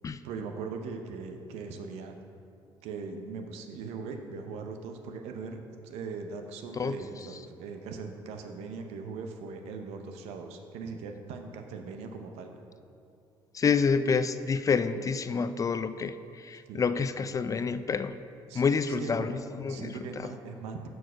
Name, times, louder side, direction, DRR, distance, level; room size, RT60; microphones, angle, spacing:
voice 1, 0.2-2.2 2.8-12.5 16.7-16.8 18.5-19.4 19.7-20.9, right 4 dB, 80° right, 5 dB, 0.7 m, -40 dB
voice 2, 13.5-18.2 18.5-20.3, left 5 dB, 30° left, 12 dB, 0.3 m, -28 dB
6.3 x 4.7 x 6.1 m, 2.6 s
supercardioid pair, 70°, 11 cm